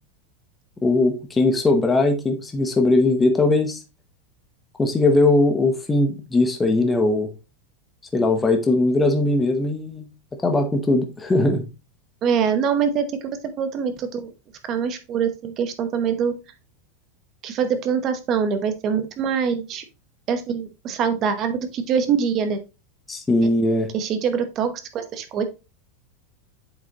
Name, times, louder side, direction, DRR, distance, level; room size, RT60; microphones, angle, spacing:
voice 1, 0.8-3.8 4.8-7.3 8.1-10.1 10.4-11.7 23.1-23.9, left 2 dB, 10° left, 0.8 m, -20 dB
voice 2, 12.2-14.3 14.6-16.3 17.4-19.8 20.3-22.6 23.9-25.5, right 7 dB, 25° right, 0.9 m, -24 dB
7.9 x 5.2 x 2.9 m
supercardioid pair, 175°, 0 cm